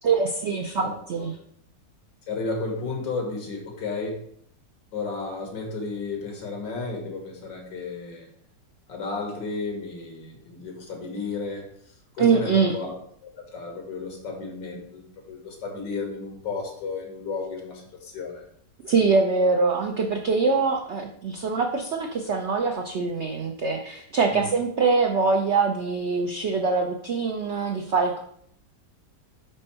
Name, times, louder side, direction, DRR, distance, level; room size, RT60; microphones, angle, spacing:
voice 1, 0.0-1.3 12.2-12.8 18.8-28.2, right 4 dB, 85° right, 3 dB, 0.6 m, -23 dB
voice 2, 2.3-4.2 4.9-8.3 8.9-11.7 12.1-12.9 13.2-18.5 24.3-24.5, left 3 dB, 80° left, 1 dB, 2.1 m, -33 dB
5.4 x 5.2 x 4.2 m, 0.67 s
omnidirectional pair, 1.9 m